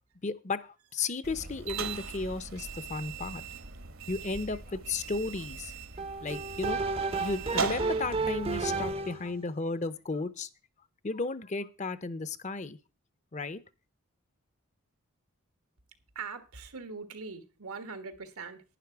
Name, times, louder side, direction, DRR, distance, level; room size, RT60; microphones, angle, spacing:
voice 1, 0.2-3.4 4.1-5.7 6.2-6.8 7.2-10.5 11.0-12.8 13.3-13.6, left 3 dB, 35° left, 0.6 m, -34 dB
sound 1, 1.2-8.9, right 5 dB, 70° right, 1.2 m, -39 dB
sound 2, 6.0-9.3, right 3 dB, 25° right, 0.6 m, -32 dB
voice 2, 16.1-18.6, right 4 dB, 90° right, 1.6 m, -41 dB
11.0 x 10.0 x 4.6 m
head